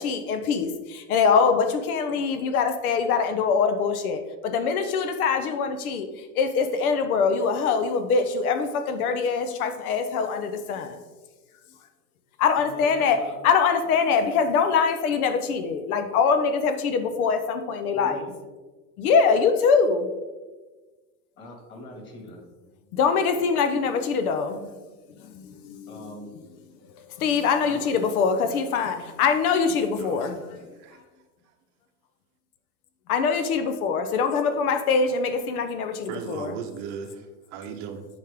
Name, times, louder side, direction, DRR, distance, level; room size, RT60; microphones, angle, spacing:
voice 1, 0.0-11.0 12.4-18.2 19.0-20.1 22.9-24.7 25.2-25.9 27.0-30.4 33.1-36.5, left 5 dB, 75° left, 7 dB, 1.0 m, -23 dB
voice 2, 12.6-13.3 17.9-18.3 21.4-22.5 25.9-26.3 27.6-27.9, left 1 dB, 25° left, 1 dB, 2.0 m, -42 dB
voice 3, 30.0-30.4 30.7-31.0 36.1-38.1, right 6 dB, 45° right, 6 dB, 0.9 m, -37 dB
9.2 x 5.2 x 3.6 m, 1.2 s
supercardioid pair, 145°, 44 cm